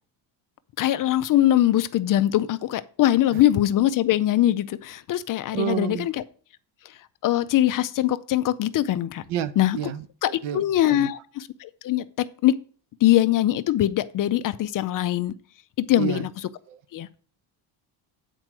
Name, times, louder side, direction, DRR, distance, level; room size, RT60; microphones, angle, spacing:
voice 1, 0.8-6.2 7.2-9.2 9.6-9.8 10.2-12.6 13.0-15.3 15.8-16.3 16.9-17.1, left 13 dB, 45° left, 14 dB, 0.5 m, -22 dB
voice 2, 5.5-6.1 9.3-11.1 16.0-16.3 16.7-16.8, right 11 dB, 90° right, 13 dB, 1.0 m, -30 dB
9.1 x 4.5 x 6.1 m, 0.42 s
cardioid pair, 170°, 47 cm